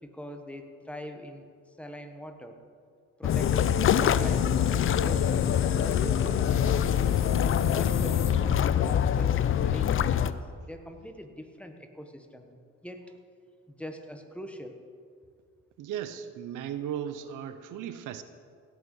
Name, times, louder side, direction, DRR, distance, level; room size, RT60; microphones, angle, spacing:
voice 1, 0.0-1.5 1.8-2.6 3.2-3.6 3.9-6.5 7.7-13.1 13.7-14.8, equal, 5° left, 5 dB, 1.1 m, -43 dB
sound 1, 3.2-10.3, left 9 dB, 45° left, 0.4 m, -25 dB
sound 2, 3.3-8.3, left 5 dB, 60° left, 1.1 m, -34 dB
voice 2, 15.8-18.2, right 9 dB, 85° right, 11 dB, 0.7 m, -36 dB
17.0 x 6.3 x 5.5 m, 2.2 s
cardioid pair, 90°, 30 cm